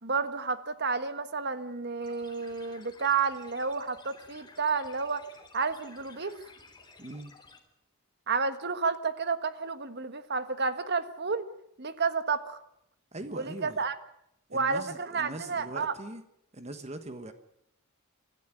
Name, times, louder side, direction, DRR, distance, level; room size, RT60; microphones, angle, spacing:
voice 1, 0.0-5.2 5.5-6.3 8.3-11.5 11.8-12.6 13.3-13.9 14.5-15.9, right 5 dB, 50° right, 11 dB, 1.5 m, -31 dB
sound 1, 2.0-7.6, left 3 dB, 20° left, 3.1 m, -54 dB
voice 2, 7.0-7.3 13.1-13.8 14.5-16.2 16.5-17.3, right 2 dB, 30° right, 9 dB, 1.3 m, -41 dB
26.0 x 14.0 x 9.2 m, 0.78 s
head